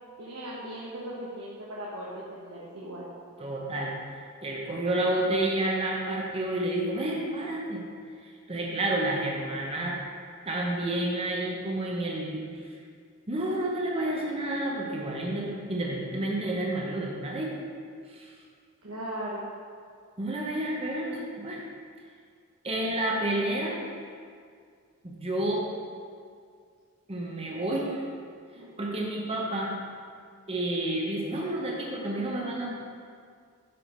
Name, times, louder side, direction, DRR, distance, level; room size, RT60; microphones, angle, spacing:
voice 1, 0.2-3.1 18.8-19.5 28.5-28.8, right 1 dB, 90° right, -6 dB, 1.2 m, -38 dB
voice 2, 3.4-3.9 4.4-7.8 8.2-10.0 10.4-12.4 13.3-17.5 18.1-18.3 20.2-21.6 22.6-23.8 25.0-25.7 27.1-28.1 28.8-29.7 30.5-32.7, right 1 dB, 25° right, -2 dB, 1.0 m, -30 dB
7.9 x 4.9 x 5.2 m, 2.1 s
head